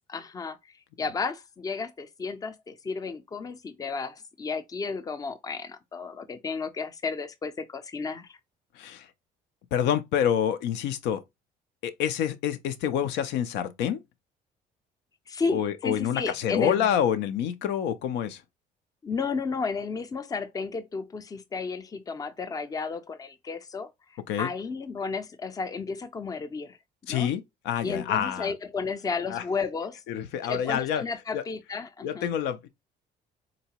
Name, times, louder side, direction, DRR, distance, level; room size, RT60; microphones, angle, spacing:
voice 1, 0.1-0.6 1.0-8.4 15.3-16.9 19.0-23.9 24.4-26.8 27.1-27.3 27.8-30.0 30.4-32.3, left 4 dB, 20° left, 0.5 m, -33 dB
voice 2, 8.8-9.1 9.7-11.2 11.8-14.0 15.5-18.4 24.3-24.5 27.1-28.5 29.3-29.4 30.1-31.0 31.3-31.4 32.0-32.7, left 9 dB, 90° left, 0.5 m, -27 dB
3.9 x 2.2 x 2.8 m
cardioid pair, 110°, 17 cm